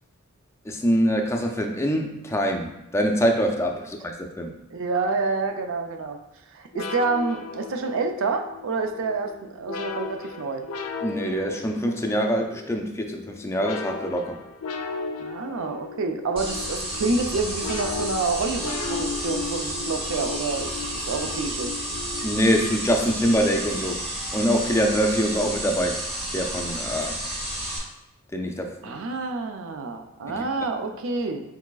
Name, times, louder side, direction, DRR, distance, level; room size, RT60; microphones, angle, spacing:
voice 1, 0.7-4.5 11.0-14.4 22.2-24.0 24.3-26.0 26.3-27.2 28.3-29.0 30.3-30.4, equal, 10° left, 3 dB, 0.4 m, -24 dB
voice 2, 4.7-6.2 6.5-10.7 15.2-21.7 28.8-31.4, right 3 dB, 60° right, 5 dB, 0.4 m, -28 dB
sound 1, 6.7-22.9, left 4 dB, 75° left, 0.4 m, -36 dB
sound 2, 16.4-27.8, right 1 dB, 25° right, 1.0 m, -31 dB
4.7 x 3.9 x 2.3 m, 0.90 s
head